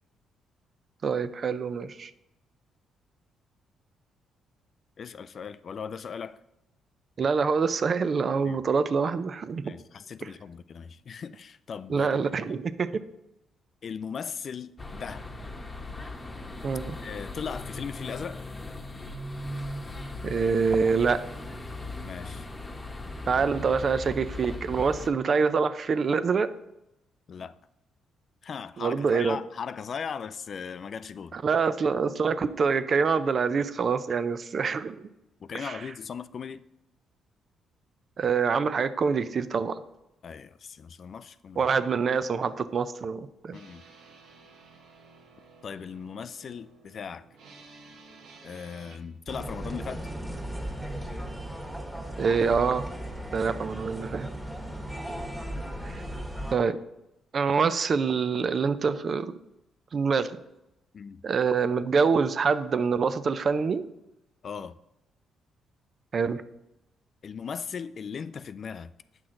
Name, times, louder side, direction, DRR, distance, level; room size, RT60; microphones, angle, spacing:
voice 1, 1.0-2.1 7.2-9.7 10.2-10.3 11.9-12.9 16.6-17.0 20.2-21.2 23.3-26.5 28.8-29.4 31.3-35.1 35.5-35.8 38.2-39.8 41.6-43.6 52.2-52.8 53.3-54.3 55.8-56.0 56.5-56.8 57.3-59.3 59.9-60.4 61.2-63.8 66.1-66.4, right 5 dB, 45° right, 0.5 m, -25 dB
voice 2, 5.0-6.4 8.5-8.6 9.6-12.5 13.8-15.3 17.0-18.5 22.0-22.5 27.3-27.6 28.4-31.4 35.4-36.7 40.2-41.7 43.5-43.8 45.6-47.3 48.4-50.0 60.9-61.2 64.4-64.8 67.2-68.9, left 6 dB, 50° left, 0.3 m, -38 dB
sound 1, 14.8-25.1, left 2 dB, 20° left, 1.0 m, -38 dB
sound 2, 43.5-49.0, right 4 dB, 90° right, 1.3 m, -53 dB
sound 3, 49.3-56.6, right 1 dB, 5° right, 1.5 m, -36 dB
8.7 x 6.1 x 3.7 m
cardioid pair, 90°, 0 cm